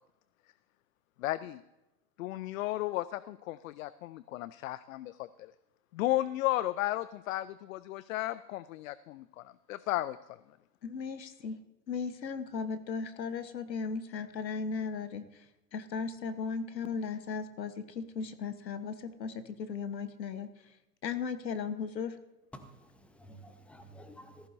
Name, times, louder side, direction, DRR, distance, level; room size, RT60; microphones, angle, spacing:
voice 1, 1.2-1.6 2.2-5.5 5.9-10.2, left 15 dB, 55° left, 17 dB, 0.5 m, -34 dB
voice 2, 10.8-11.6 11.9-15.4 15.7-20.5 21.0-22.2, left 5 dB, 90° left, 11 dB, 1.2 m, -36 dB
voice 3, 22.5-24.5, equal, ahead, 7 dB, 1.0 m, -51 dB
15.0 x 14.5 x 2.7 m, 0.99 s
hypercardioid pair, 110°, 49 cm